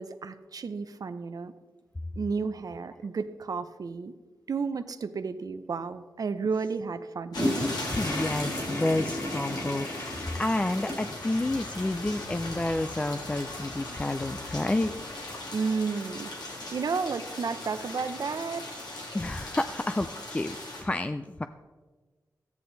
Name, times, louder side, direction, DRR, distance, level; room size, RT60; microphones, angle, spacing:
voice 1, 0.0-1.5 2.2-4.1 4.5-7.6 15.5-16.3 16.7-18.8, right 5 dB, 60° right, 11 dB, 0.6 m, -32 dB
sound 1, 7.3-20.8, left 2 dB, 75° left, 2.5 m, -39 dB
sound 2, 7.3-15.4, left 1 dB, 45° left, 3.1 m, -36 dB
voice 2, 7.8-14.9 19.1-21.5, left 2 dB, 20° left, 9 dB, 0.4 m, -30 dB
13.0 x 9.6 x 4.0 m, 1.4 s
cardioid pair, 70°, 7 cm